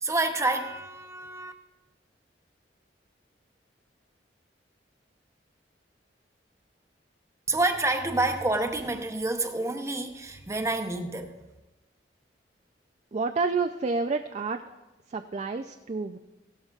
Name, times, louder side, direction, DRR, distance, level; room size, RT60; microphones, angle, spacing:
voice 1, 0.0-1.5 7.5-11.5, right 2 dB, 15° right, 0.8 m, -28 dB
voice 2, 13.1-14.6 15.1-16.2, right 4 dB, 40° right, 0.4 m, -29 dB
16.0 x 12.5 x 2.4 m
head